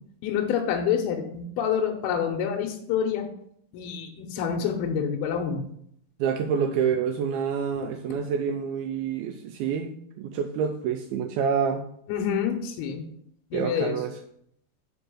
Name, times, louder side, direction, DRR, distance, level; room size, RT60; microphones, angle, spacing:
voice 1, 0.2-3.3 3.7-5.6 12.1-13.1 13.5-14.0, left 7 dB, 80° left, 3 dB, 2.8 m, -27 dB
voice 2, 6.2-11.9 13.5-14.1, right 7 dB, 80° right, 5 dB, 2.3 m, -27 dB
6.1 x 5.3 x 6.2 m, 0.69 s
omnidirectional pair, 4.5 m